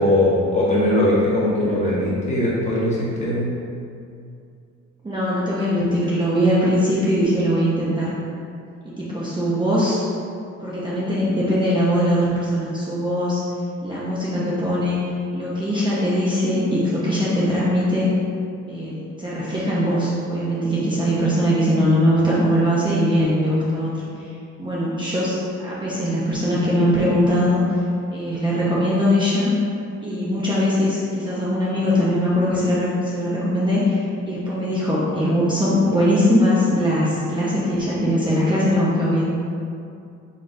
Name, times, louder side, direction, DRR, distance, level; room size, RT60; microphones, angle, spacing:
voice 1, 0.0-3.5, left 1 dB, 25° left, -7 dB, 1.1 m, -20 dB
voice 2, 5.0-8.1 8.8-10.0 10.6-13.4 13.8-18.1 18.7-24.0 24.6-25.4 25.6-27.8 28.1-29.5 30.0-39.2, equal, 15° right, -9 dB, 0.7 m, -21 dB
4.0 x 3.3 x 2.6 m, 2.5 s
cardioid pair, 90°, 30 cm